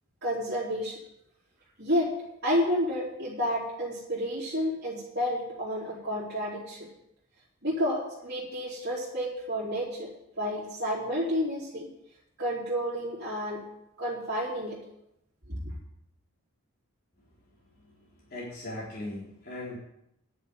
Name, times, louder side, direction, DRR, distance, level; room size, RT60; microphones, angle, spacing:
voice 1, 0.2-1.0 1.8-2.1 2.4-6.9 7.6-10.1 10.4-11.9 12.4-13.6 14.0-14.8 15.5-15.6, equal, 50° right, -6 dB, 3.5 m, -30 dB
voice 2, 18.3-19.8, left 1 dB, 45° left, -7 dB, 3.8 m, -38 dB
10.5 x 7.0 x 9.4 m, 0.80 s
head